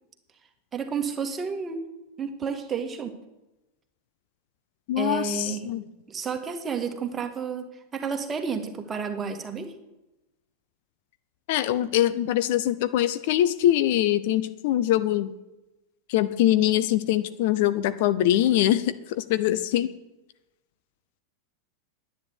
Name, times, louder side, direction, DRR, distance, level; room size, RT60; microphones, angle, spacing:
voice 1, 0.7-1.8 2.2-3.2 5.0-5.7 6.1-7.7 7.9-9.7, right 6 dB, 20° right, 5 dB, 1.8 m, -31 dB
voice 2, 4.9-5.8 11.5-15.3 16.1-19.9, left 13 dB, 50° left, 13 dB, 0.6 m, -23 dB
10.5 x 9.5 x 8.3 m, 0.99 s
figure-of-eight pair, 90°, 0 cm